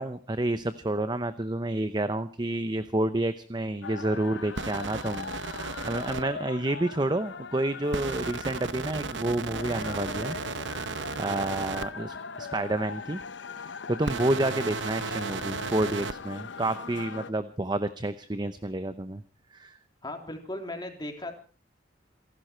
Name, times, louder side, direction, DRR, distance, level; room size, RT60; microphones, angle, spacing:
voice 1, 0.0-10.4 11.1-13.2 13.6-19.2 19.5-19.8, right 1 dB, 25° right, 12 dB, 0.8 m, -29 dB
sound 1, 3.8-17.3, left 5 dB, 85° left, 0.9 m, -40 dB
sound 2, 4.6-6.2 7.9-11.9 14.0-16.1, right 5 dB, 90° right, 0.9 m, -35 dB
voice 2, 20.0-21.3, left 1 dB, 25° left, 4 dB, 3.4 m, -37 dB
28.0 x 11.5 x 4.5 m, 0.38 s
head